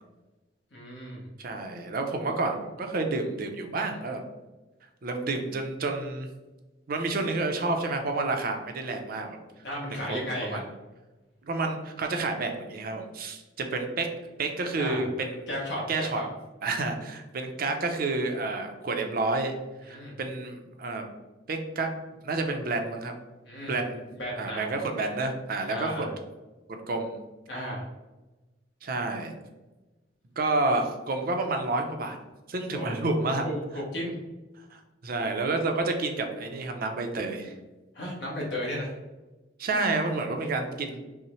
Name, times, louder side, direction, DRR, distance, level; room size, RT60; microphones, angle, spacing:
voice 1, 0.7-1.2 9.6-10.6 14.8-15.0 15.5-16.3 19.9-20.1 23.4-23.7 24.1-24.7 25.7-26.1 27.5-27.8 32.7-32.9 33.4-34.1 37.9-38.9, equal, 70° left, -3 dB, 1.0 m, -34 dB
voice 2, 1.4-4.2 5.0-6.3 6.9-9.4 9.9-10.6 11.4-14.1 14.4-15.5 15.9-16.2 16.6-19.5 19.9-21.1 21.5-21.9 22.2-23.1 23.6-24.1 24.4-26.1 26.9-27.2 28.8-29.3 30.4-32.2 32.5-33.5 34.7-37.5 39.6-41.0, right 3 dB, 55° right, 4 dB, 0.6 m, -29 dB
5.5 x 2.1 x 3.0 m, 1.1 s
head